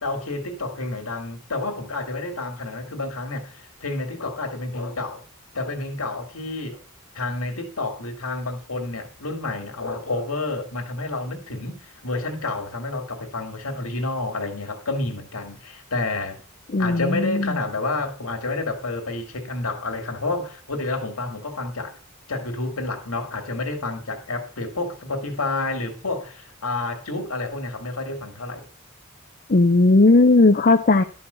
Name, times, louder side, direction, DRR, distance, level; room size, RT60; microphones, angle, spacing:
voice 1, 0.0-5.2 5.5-6.8 7.1-16.4 16.8-22.0 22.3-28.7, left 2 dB, 80° left, 2.4 m, -29 dB
voice 2, 16.7-17.6 29.5-31.0, left 3 dB, 40° left, 0.6 m, -16 dB
12.0 x 5.5 x 6.9 m
head